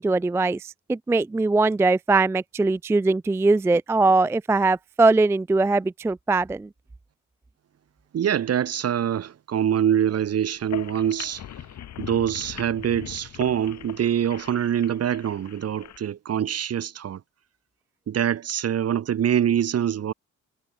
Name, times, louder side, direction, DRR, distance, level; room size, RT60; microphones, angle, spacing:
voice 1, 0.0-6.7, right 3 dB, 10° right, 0.3 m, -21 dB
voice 2, 8.1-11.4 12.0-17.2 18.1-20.1, right 9 dB, 55° right, 1.5 m, -24 dB
sound 1, 10.6-16.0, left 10 dB, 65° left, 2.8 m, -41 dB
cardioid pair, 90°, 30 cm